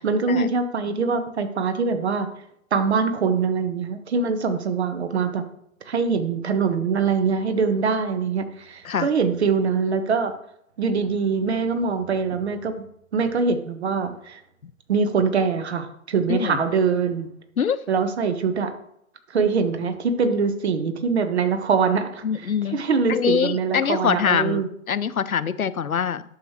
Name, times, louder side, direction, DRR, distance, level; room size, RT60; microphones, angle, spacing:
voice 1, 0.0-2.3 2.7-5.4 5.9-10.3 10.8-12.8 13.1-14.4 14.9-17.3 17.9-18.7 19.3-24.7, right 5 dB, 50° right, 9 dB, 1.2 m, -23 dB
voice 2, 16.3-16.6 17.6-17.8 19.8-19.9 22.2-22.8 23.1-26.2, left 7 dB, 80° left, 16 dB, 0.6 m, -24 dB
11.0 x 6.6 x 3.1 m, 0.73 s
figure-of-eight pair, 125°, 42 cm